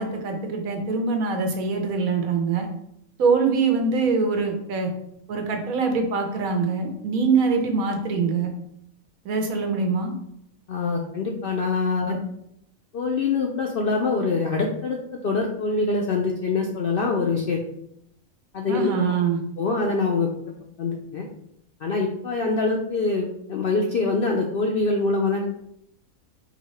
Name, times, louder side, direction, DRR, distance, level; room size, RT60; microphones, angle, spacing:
voice 1, 0.0-2.7 3.2-4.9 5.3-8.5 9.2-10.1 12.0-12.2 18.7-19.4, right 4 dB, 80° right, 4 dB, 1.2 m, -23 dB
voice 2, 10.7-12.2 12.9-17.6 18.5-19.1 19.6-20.3 20.8-21.3 21.8-25.4, left 3 dB, 70° left, 1 dB, 0.5 m, -24 dB
4.9 x 2.7 x 3.1 m, 0.74 s
omnidirectional pair, 1.5 m